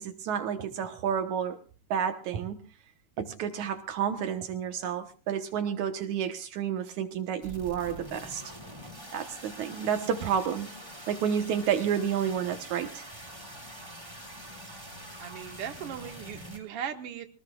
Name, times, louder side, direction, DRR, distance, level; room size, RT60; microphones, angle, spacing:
voice 1, 0.0-1.6 1.9-2.6 3.2-8.4 9.1-10.7 11.1-13.0, right 8 dB, 75° right, 7 dB, 2.6 m, -30 dB
sound 1, 7.4-16.6, right 1 dB, 10° right, 4.0 m, -45 dB
voice 2, 14.7-17.3, right 9 dB, 55° right, 5 dB, 2.6 m, -39 dB
23.0 x 19.5 x 2.4 m, 0.36 s
omnidirectional pair, 3.4 m